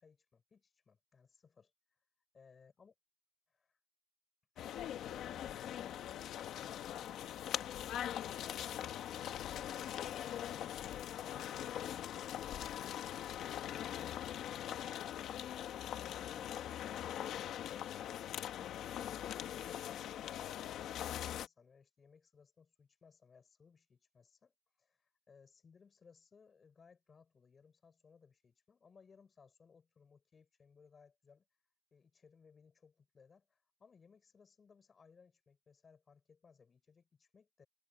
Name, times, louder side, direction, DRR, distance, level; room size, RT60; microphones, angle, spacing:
voice 1, 0.0-1.7 2.3-2.9 3.5-3.8 4.5-8.9 15.9-31.5 31.9-37.7, left 5 dB, 30° left, 5.8 m, -64 dB
sound 1, 4.6-21.5, left 11 dB, 80° left, 1.3 m, -42 dB
cardioid pair, 175°, 0 cm